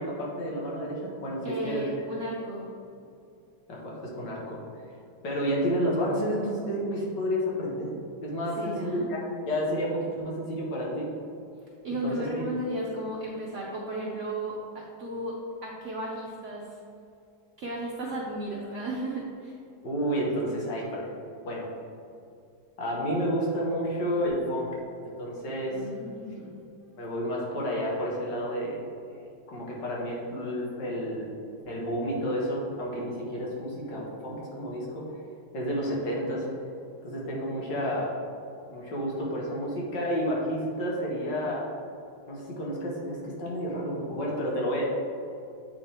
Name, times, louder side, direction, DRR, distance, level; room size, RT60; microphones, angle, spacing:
voice 1, 0.0-1.9 3.7-4.6 5.2-7.9 8.2-9.2 9.5-11.1 12.0-12.4 19.8-21.1 21.5-21.7 22.8-24.7 25.0-25.8 27.0-29.2 29.5-31.3 31.7-35.2 35.5-36.5 37.0-38.1 38.7-41.7 42.3-44.8, equal, 60° left, -4 dB, 1.8 m, -30 dB
voice 2, 1.4-2.7 8.6-9.1 11.8-16.8 17.6-19.6 25.7-26.6, right 1 dB, 75° right, -4 dB, 0.6 m, -34 dB
8.3 x 3.5 x 4.3 m, 2.6 s
omnidirectional pair, 2.2 m